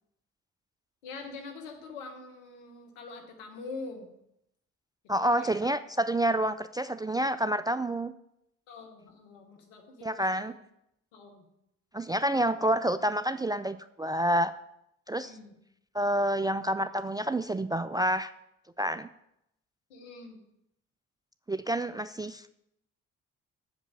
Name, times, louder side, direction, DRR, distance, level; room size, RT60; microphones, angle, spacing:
voice 1, 1.0-4.1 5.2-5.7 8.7-10.6 11.1-11.4 15.2-15.5 19.9-20.4, left 3 dB, 85° left, 3 dB, 1.3 m, -44 dB
voice 2, 5.1-8.1 10.0-10.5 11.9-14.5 15.1-15.3 15.9-18.3 18.8-19.1 21.5-22.4, right 1 dB, 10° right, 13 dB, 0.3 m, -28 dB
7.7 x 5.3 x 7.5 m, 0.80 s
hypercardioid pair, 45°, 37 cm